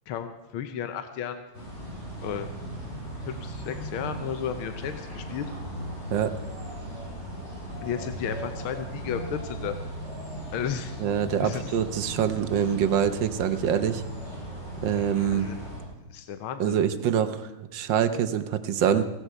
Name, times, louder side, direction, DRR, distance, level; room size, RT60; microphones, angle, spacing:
voice 1, 0.1-1.4 2.2-2.5 3.2-5.5 7.8-9.8 10.5-11.0 11.4-11.7 15.3-15.6 16.1-16.8, left 8 dB, 80° left, 8 dB, 1.7 m, -33 dB
sound 1, 1.5-15.8, right 1 dB, 30° left, 7.4 m, -37 dB
voice 2, 11.0-14.0 14.8-15.5 16.6-19.0, right 8 dB, 65° right, 10 dB, 1.4 m, -25 dB
16.5 x 16.0 x 4.6 m, 1.1 s
omnidirectional pair, 2.3 m